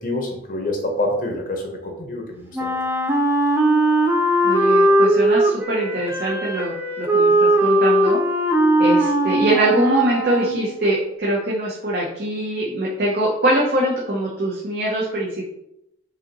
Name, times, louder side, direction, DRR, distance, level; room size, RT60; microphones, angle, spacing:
voice 1, 0.0-2.7, left 1 dB, 45° left, 2 dB, 0.7 m, -26 dB
Wind instrument woodwind instrument, 2.5-10.6, right 1 dB, 10° right, 0.4 m, -19 dB
voice 2, 4.4-8.2 8.8-15.5, right 1 dB, 50° right, -4 dB, 0.6 m, -23 dB
4.9 x 2.7 x 2.9 m, 0.84 s
head